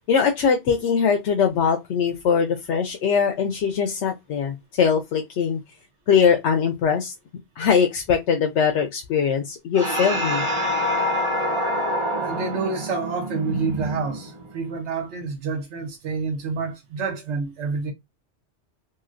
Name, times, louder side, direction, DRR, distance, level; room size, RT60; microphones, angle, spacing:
voice 1, 0.1-5.6 6.1-7.1 7.6-10.4, left 6 dB, 80° left, 0.9 m, -21 dB
church bell, 9.7-14.5, equal, 35° right, 0.5 m, -26 dB
voice 2, 12.2-17.9, right 4 dB, 80° right, 1.1 m, -28 dB
3.0 x 2.7 x 2.5 m
omnidirectional pair, 1.2 m